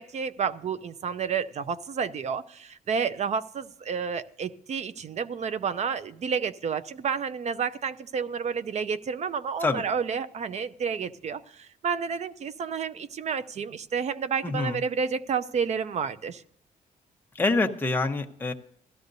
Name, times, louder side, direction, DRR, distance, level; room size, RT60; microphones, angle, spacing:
voice 1, 0.0-16.4, right 6 dB, 45° right, 14 dB, 0.6 m, -30 dB
voice 2, 14.4-14.8 17.3-18.5, left 3 dB, 15° left, 3 dB, 0.9 m, -26 dB
17.0 x 13.0 x 2.7 m, 0.67 s
cardioid pair, 150°, 16 cm